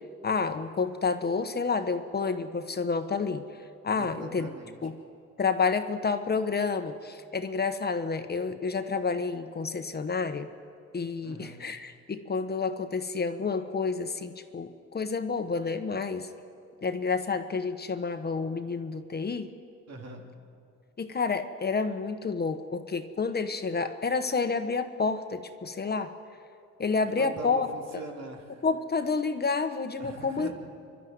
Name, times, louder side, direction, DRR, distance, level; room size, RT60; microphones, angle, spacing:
voice 1, 0.2-3.4 3.8-4.5 4.8-4.9 5.4-10.5 10.9-16.3 16.8-19.5 21.0-26.1 26.8-27.7 27.9-28.0 28.6-30.5, left 4 dB, 30° left, 8 dB, 1.2 m, -29 dB
voice 2, 3.9-4.8 11.2-11.6 19.9-20.2 27.1-28.6 30.0-30.5, right 3 dB, 60° right, 1 dB, 3.3 m, -42 dB
27.0 x 12.0 x 9.5 m, 2.4 s
cardioid pair, 90°, 30 cm